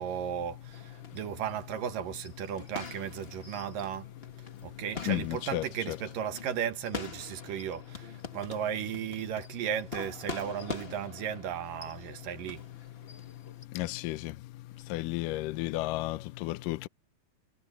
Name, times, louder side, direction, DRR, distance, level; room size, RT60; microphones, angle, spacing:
voice 1, 0.0-4.1 4.6-12.6, right 9 dB, 80° right, 3.1 m, -35 dB
sound 1, 0.7-13.6, left 4 dB, 45° left, 0.8 m, -45 dB
voice 2, 5.1-6.0 13.8-14.3 14.9-16.9, left 18 dB, 80° left, 2.3 m, -33 dB
omnidirectional pair, 3.9 m